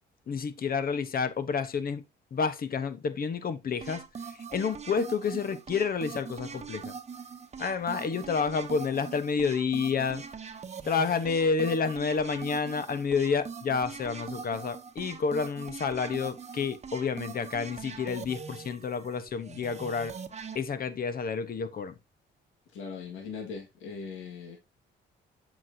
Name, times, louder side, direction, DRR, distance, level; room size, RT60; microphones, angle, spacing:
voice 1, 0.3-2.0 2.3-4.0 4.5-6.9 7.6-10.2 10.8-20.1 20.5-22.0, left 5 dB, 50° left, 1.1 m, -29 dB
sound 1, 3.8-20.6, right 6 dB, 35° right, 1.0 m, -42 dB
voice 2, 22.7-24.6, left 5 dB, 90° left, 1.9 m, -40 dB
7.4 x 6.1 x 2.8 m
cardioid pair, 90°, 20 cm